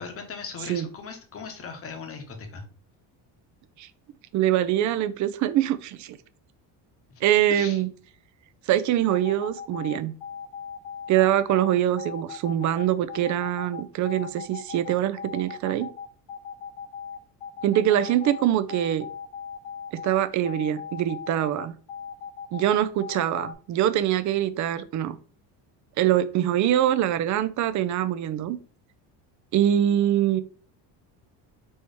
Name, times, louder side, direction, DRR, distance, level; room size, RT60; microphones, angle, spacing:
voice 1, 0.0-2.6 7.5-7.8, left 5 dB, 30° left, 5 dB, 1.0 m, -38 dB
voice 2, 4.3-6.2 7.2-7.9 8.7-10.2 11.1-15.9 17.6-19.1 19.9-21.7 22.5-25.2 26.0-28.6 29.5-30.4, right 11 dB, 45° right, 12 dB, 0.4 m, -24 dB
sound 1, 9.1-23.5, left 7 dB, 70° left, 1.3 m, -38 dB
4.2 x 3.0 x 3.4 m, 0.40 s
cardioid pair, 130°, 44 cm